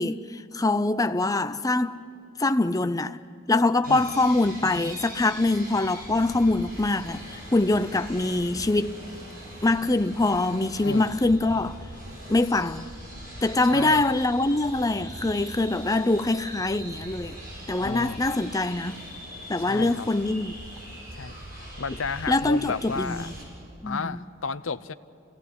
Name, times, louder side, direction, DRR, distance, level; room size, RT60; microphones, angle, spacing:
voice 1, 0.0-2.0 2.4-3.2 3.5-9.0 9.6-11.8 12.3-12.9 13.4-17.4 17.7-19.0 19.5-20.5 22.3-23.3 23.8-24.3, left 2 dB, 20° left, 0.6 m, -24 dB
sound 1, 3.8-23.4, right 1 dB, 45° right, 8.0 m, -41 dB
voice 2, 13.6-14.1 17.8-18.2 19.6-20.1 21.1-21.4 21.8-23.3 23.8-24.9, left 4 dB, 75° left, 0.8 m, -32 dB
28.5 x 18.0 x 9.6 m
head